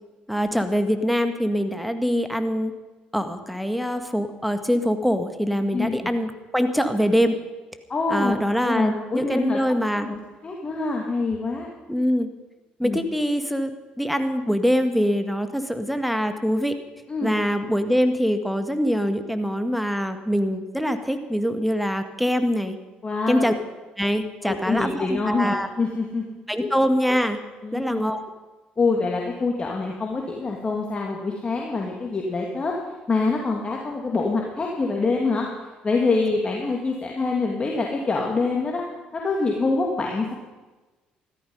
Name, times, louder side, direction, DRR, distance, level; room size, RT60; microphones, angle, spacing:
voice 1, 0.3-2.7 3.1-7.4 8.1-10.1 11.9-12.3 12.8-13.7 14.0-16.7 17.2-22.8 23.3-23.5 24.0-25.7 26.5-27.4 27.7-28.2, equal, ahead, 8 dB, 1.8 m, -23 dB
voice 2, 7.9-8.4 8.6-11.7 12.8-13.0 17.1-17.3 23.0-23.6 24.4-26.7 27.6-28.0 28.8-32.7 33.1-35.5 35.8-38.8 39.1-40.3, left 3 dB, 35° left, 0 dB, 2.5 m, -25 dB
15.0 x 13.5 x 5.5 m, 1.2 s
supercardioid pair, 70°, 3 cm